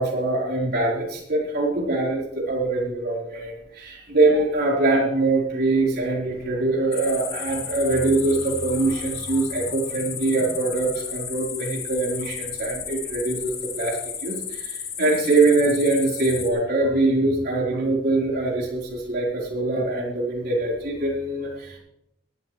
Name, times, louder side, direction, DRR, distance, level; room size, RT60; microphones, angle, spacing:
voice 1, 0.0-21.8, right 2 dB, 60° right, -3 dB, 4.3 m, -23 dB
sound 1, 6.9-16.5, left 7 dB, 40° left, 1.9 m, -33 dB
18.5 x 12.0 x 3.3 m, 0.81 s
head